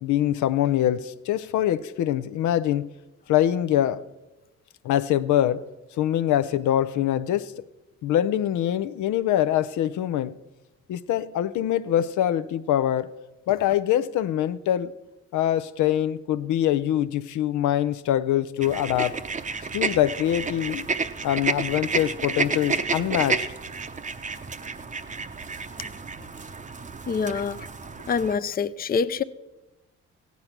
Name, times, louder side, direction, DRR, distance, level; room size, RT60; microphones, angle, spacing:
voice 1, 0.0-2.9 3.3-4.0 4.8-5.6 6.0-7.5 8.0-10.4 10.9-13.2 13.5-14.9 15.3-19.2 19.7-20.9 21.2-23.5, left 11 dB, 75° left, 0.6 m, -24 dB
sound 1, 18.6-28.3, right 4 dB, 25° right, 0.7 m, -31 dB
voice 2, 27.1-27.6 28.1-29.2, left 6 dB, 30° left, 0.5 m, -25 dB
15.5 x 9.5 x 5.9 m
cardioid pair, 90°, 30 cm